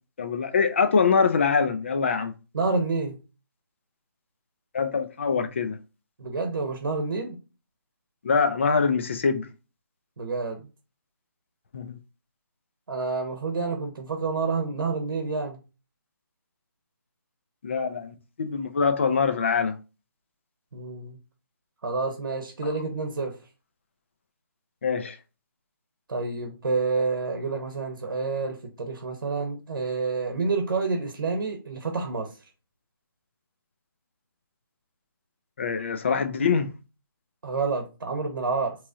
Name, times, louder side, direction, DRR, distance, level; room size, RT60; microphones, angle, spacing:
voice 1, 0.2-2.3 4.7-5.8 8.2-9.5 11.7-12.0 17.6-19.8 24.8-25.2 35.6-36.7, left 5 dB, 30° left, 0.4 m, -24 dB
voice 2, 2.5-3.2 6.2-7.4 10.2-10.7 12.9-15.6 20.7-21.2 21.8-23.4 26.1-32.3 37.4-38.8, right 4 dB, 65° right, 0.9 m, -28 dB
3.5 x 3.1 x 2.6 m
hypercardioid pair, 165°, 12 cm